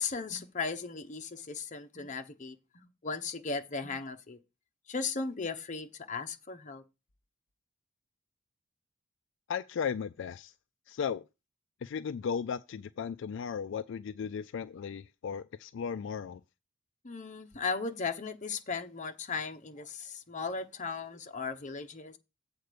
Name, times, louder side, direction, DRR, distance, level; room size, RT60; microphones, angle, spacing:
voice 1, 0.0-4.4 4.9-6.8 17.0-22.2, left 4 dB, 40° left, 0.9 m, -37 dB
voice 2, 9.5-10.5 10.9-11.2 11.8-16.4, left 7 dB, 65° left, 0.3 m, -36 dB
8.0 x 4.4 x 6.7 m
head